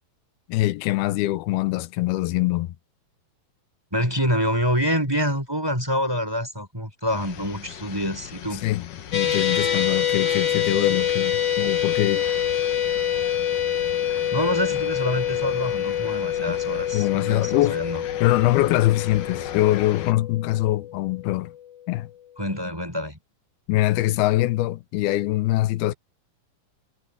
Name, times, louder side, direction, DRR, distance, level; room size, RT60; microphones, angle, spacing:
voice 1, 0.5-2.7 8.6-8.8 9.1-12.3 16.5-16.6 16.9-17.8 18.2-21.5 21.9-22.1 23.7-25.9, left 16 dB, 85° left, 2.7 m, -23 dB
voice 2, 3.9-8.7 14.0-18.0 22.4-23.2, equal, 5° right, 5.1 m, -26 dB
sound 1, 7.1-20.1, left 9 dB, 65° left, 2.8 m, -39 dB
sound 2, 9.1-21.5, left 9 dB, 45° left, 3.8 m, -26 dB
omnidirectional pair, 4.3 m